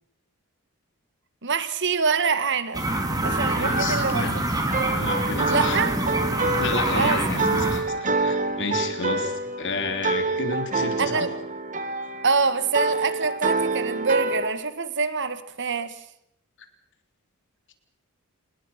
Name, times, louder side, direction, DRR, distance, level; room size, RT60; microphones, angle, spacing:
voice 1, 1.4-2.8 3.2-4.4 4.8-4.9 5.5-6.2 6.9-7.2 11.0-11.3 12.2-15.9, right 5 dB, 55° right, 12 dB, 1.7 m, -25 dB
sound 1, 2.7-7.8, right 1 dB, 15° right, 3.3 m, -25 dB
sound 2, 3.2-14.5, right 3 dB, 35° right, 1.7 m, -28 dB
voice 2, 3.6-4.3 4.9-5.8 6.4-11.3, left 3 dB, 55° left, 6 dB, 3.5 m, -31 dB
27.5 x 20.5 x 5.8 m, 0.75 s
head